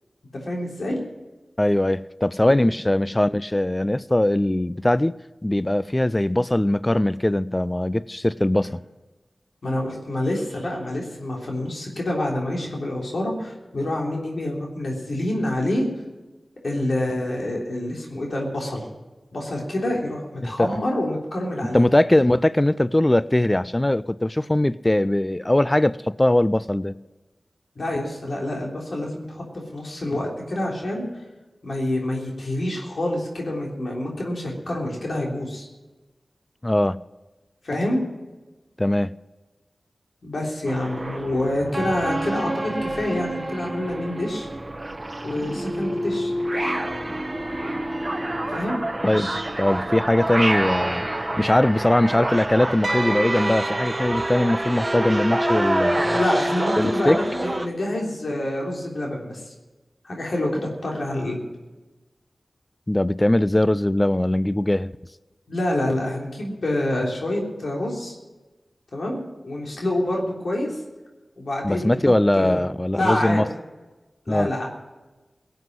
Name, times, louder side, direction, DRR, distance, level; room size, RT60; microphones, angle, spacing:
voice 1, 0.4-1.0 2.5-2.6 9.6-15.9 16.6-18.9 19.3-21.8 27.8-31.1 31.6-35.7 37.6-38.0 40.2-44.5 45.2-46.3 48.5-48.8 56.1-59.5 60.0-61.4 65.5-68.1 68.9-70.7 71.4-72.0 72.3-72.6 72.9-73.4 74.3-74.7, left 1 dB, 70° left, -1 dB, 3.5 m, -27 dB
voice 2, 1.6-8.8 20.4-20.7 21.7-26.9 36.6-37.0 38.8-39.1 49.0-49.3 49.6-51.1 51.4-56.2 56.8-57.2 62.9-64.9 71.6-73.5 74.3-74.5, left 1 dB, 20° left, 17 dB, 0.4 m, -21 dB
sound 1, 40.7-57.7, right 1 dB, 30° right, 1.0 m, -27 dB
17.5 x 7.9 x 7.5 m, 1.2 s
wide cardioid pair, 55°, 0 cm